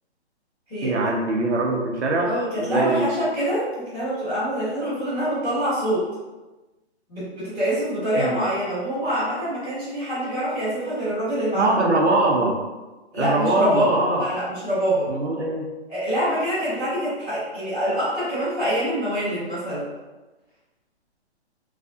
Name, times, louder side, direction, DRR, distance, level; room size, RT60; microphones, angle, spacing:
voice 1, 0.8-2.3 2.6-3.0 8.2-8.4 11.5-12.6 13.1-14.2 15.1-15.7, right 2 dB, 90° right, 0 dB, 0.9 m, -22 dB
voice 2, 2.3-6.1 7.1-11.7 13.1-15.1 15.9-19.9, equal, 5° left, -22 dB, 0.5 m, -25 dB
3.2 x 2.4 x 2.6 m, 1.2 s
hypercardioid pair, 160°, 34 cm